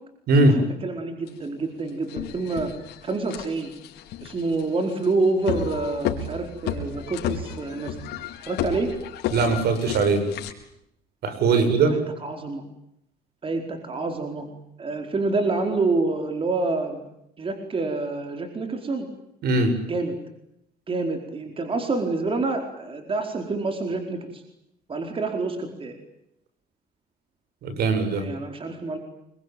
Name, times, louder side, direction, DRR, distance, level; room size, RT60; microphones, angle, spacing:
voice 1, 0.4-2.7 3.0-3.7 4.2-8.0 8.5-8.9 11.5-11.6 11.9-12.6 13.4-14.5 14.8-17.0 17.4-19.1 19.9-20.1 20.9-24.4 24.9-25.9 28.1-29.0, right 3 dB, 30° right, 5 dB, 4.6 m, -27 dB
sound 1, 1.3-1.4 1.9-10.5, left 9 dB, 85° left, 4.5 m, -33 dB
voice 2, 9.3-10.2 11.2-11.9 19.4-19.7 27.6-28.2, right 3 dB, 70° right, 9 dB, 7.9 m, -20 dB
27.5 x 23.5 x 9.4 m, 0.79 s
cardioid pair, 110°, 17 cm